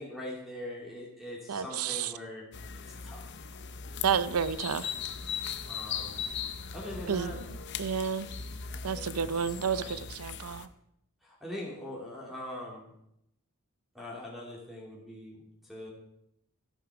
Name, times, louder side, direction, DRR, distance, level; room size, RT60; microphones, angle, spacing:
voice 1, 0.0-2.5 3.0-3.2 5.7-6.2 6.7-7.4 8.7-10.1 11.2-12.9 13.9-15.3 15.6-15.9, left 1 dB, ahead, -4 dB, 2.7 m, -42 dB
voice 2, 1.5-2.1 4.0-4.9 7.1-7.3 7.8-8.3 8.8-10.7, right 7 dB, 80° right, 16 dB, 0.6 m, -30 dB
sound 1, 2.5-10.7, left 7 dB, 50° left, 0.8 m, -39 dB
13.0 x 11.0 x 4.8 m, 0.80 s
head